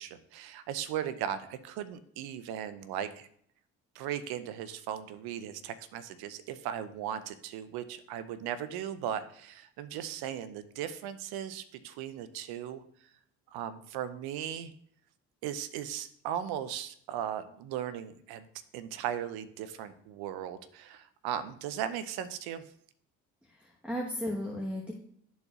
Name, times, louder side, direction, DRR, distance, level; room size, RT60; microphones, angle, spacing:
voice 1, 0.0-3.3 3.9-12.8 13.5-14.7 15.4-18.5 18.7-22.6, right 10 dB, 75° right, 12 dB, 0.7 m, -37 dB
voice 2, 23.5-24.9, equal, 5° right, -3 dB, 1.2 m, -35 dB
11.5 x 4.0 x 2.4 m, 0.65 s
hypercardioid pair, 55°, 37 cm